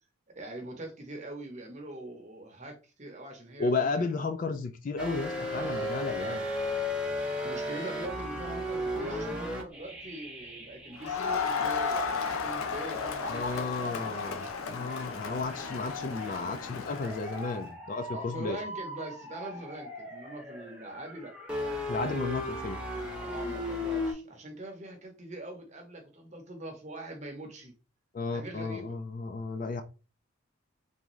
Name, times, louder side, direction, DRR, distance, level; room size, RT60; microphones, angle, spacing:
voice 1, 0.3-4.1 5.5-6.0 7.4-14.5 18.1-21.3 23.2-27.7 28.3-28.9, right 1 dB, 35° right, 0.8 m, -43 dB
voice 2, 3.6-6.5 13.3-18.6 21.9-22.8 28.1-29.8, left 3 dB, 40° left, 0.3 m, -33 dB
sound 1, 5.0-11.5 12.0-24.1, left 1 dB, 5° right, 0.6 m, -37 dB
Crowd, 11.0-17.6, left 5 dB, 90° left, 0.6 m, -34 dB
3.5 x 2.6 x 3.0 m
head